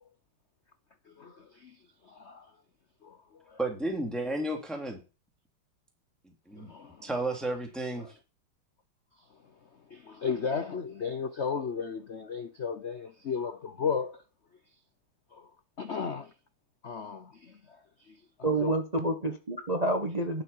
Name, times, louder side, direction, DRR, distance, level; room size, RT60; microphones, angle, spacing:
voice 1, 1.1-2.5 3.0-3.6 6.6-7.1 8.0-8.1 9.2-9.3 9.9-14.2 15.3-15.5 15.8-16.3 16.8-18.7, left 6 dB, 65° left, 0.6 m, -35 dB
voice 2, 3.6-5.0 6.5-6.7 7.0-8.1, right 1 dB, ahead, 2.9 m, -32 dB
voice 3, 18.4-20.4, right 2 dB, 25° right, 1.0 m, -28 dB
11.5 x 7.5 x 5.6 m
omnidirectional pair, 2.4 m